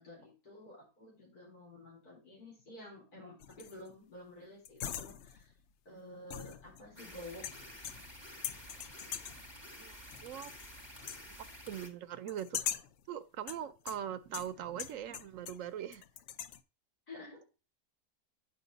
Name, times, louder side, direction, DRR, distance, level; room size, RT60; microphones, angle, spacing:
voice 1, 0.0-5.5 5.8-7.4 17.1-17.4, left 1 dB, 90° left, 4.6 m, -51 dB
sound 1, 3.4-3.9 4.6-5.5 6.3-7.0 7.4-8.2 8.4-9.5 10.1-10.7 11.0-11.3 12.3-13.0 13.5-15.7 15.9-16.6, left 9 dB, 65° left, 0.7 m, -42 dB
sound 2, 7.0-11.9, equal, 20° left, 1.2 m, -51 dB
voice 2, 10.2-10.5 10.9-11.0 11.4-12.6 13.1-16.0, right 10 dB, 70° right, 0.9 m, -41 dB
8.8 x 4.9 x 3.9 m
omnidirectional pair, 1.6 m